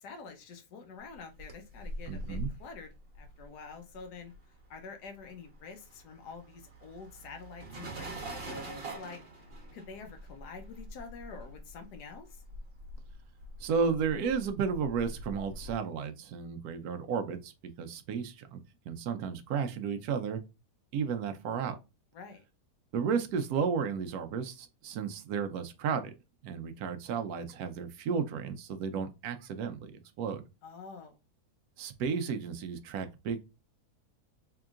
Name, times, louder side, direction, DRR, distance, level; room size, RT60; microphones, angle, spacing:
voice 1, 0.0-4.3 4.7-9.2 9.7-12.3 22.1-22.4 30.6-31.2, left 5 dB, 90° left, 1.3 m, -47 dB
sound 1, 1.1-4.8 5.0-15.8, right 1 dB, 40° right, 1.2 m, -44 dB
voice 2, 2.1-2.5 13.6-17.5 17.8-20.4 20.9-21.8 22.9-26.1 26.4-30.4 31.8-33.5, right 6 dB, 75° right, 1.0 m, -33 dB
3.7 x 3.5 x 2.4 m
omnidirectional pair, 1.7 m